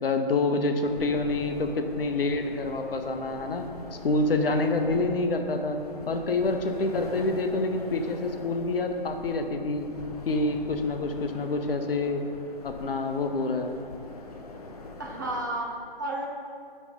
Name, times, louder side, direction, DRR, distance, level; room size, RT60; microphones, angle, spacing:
voice 1, 0.0-3.7 4.0-5.8 6.1-9.9 10.3-12.2 12.6-13.8, left 2 dB, 75° left, 6 dB, 0.8 m, -27 dB
sound 1, 0.8-15.5, left 2 dB, 40° left, 0.7 m, -43 dB
voice 2, 15.0-16.3, right 1 dB, 20° right, -2 dB, 0.5 m, -32 dB
8.9 x 3.2 x 5.1 m, 2.3 s
hypercardioid pair, 155°, 29 cm